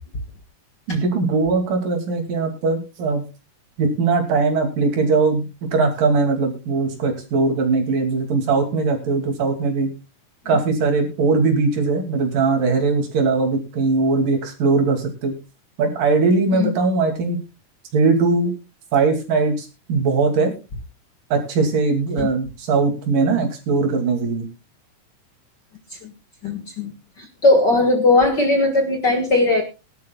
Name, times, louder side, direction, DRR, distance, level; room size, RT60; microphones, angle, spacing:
voice 1, 0.9-3.2 3.8-5.4 5.7-9.9 10.5-15.3 15.8-17.4 17.9-18.5 18.9-20.5 21.3-24.5, right 4 dB, 75° right, 3 dB, 4.2 m, -20 dB
voice 2, 26.4-26.9 27.2-29.6, left 2 dB, 40° left, 3 dB, 1.7 m, -18 dB
21.5 x 11.5 x 2.3 m, 0.29 s
omnidirectional pair, 3.9 m